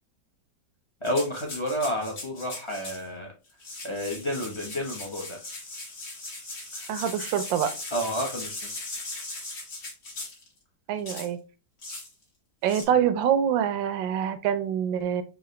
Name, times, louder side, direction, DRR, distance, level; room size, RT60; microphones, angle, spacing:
sound 1, 1.0-3.1 3.5-10.5 11.1-11.3 11.8-12.1 12.6-12.8, left 2 dB, 55° left, 2.0 m, -38 dB
voice 1, 1.0-3.3 3.8-5.4 6.8-6.9 7.9-8.7, equal, 35° left, -1 dB, 0.4 m, -30 dB
voice 2, 6.9-7.7 10.9-11.4 12.6-15.2, right 9 dB, 85° right, 10 dB, 1.4 m, -25 dB
4.7 x 2.8 x 3.1 m, 0.31 s
omnidirectional pair, 2.0 m